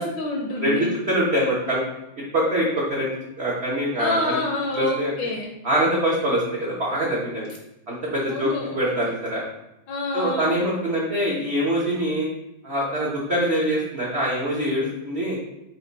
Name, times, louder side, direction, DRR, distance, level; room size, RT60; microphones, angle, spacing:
voice 1, 0.0-0.9 4.0-5.5 8.3-8.8 9.9-10.5, left 2 dB, 75° left, 1 dB, 1.1 m, -27 dB
voice 2, 1.1-1.8 2.3-3.1 3.4-4.4 4.7-5.1 5.6-7.5 7.9-9.4 10.1-12.3 12.6-15.4, equal, 85° right, -5 dB, 0.5 m, -24 dB
5.8 x 2.2 x 4.0 m, 0.89 s
omnidirectional pair, 2.4 m